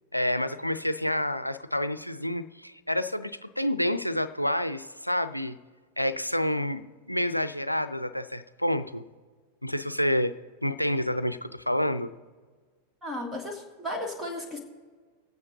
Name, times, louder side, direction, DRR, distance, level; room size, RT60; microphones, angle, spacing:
voice 1, 0.1-5.6 6.0-9.0 9.6-12.1, left 1 dB, 90° left, 11 dB, 0.4 m, -28 dB
voice 2, 13.0-14.6, left 1 dB, 10° right, -1 dB, 2.1 m, -34 dB
24.5 x 8.6 x 2.8 m, 1.5 s
figure-of-eight pair, 90°, 0 cm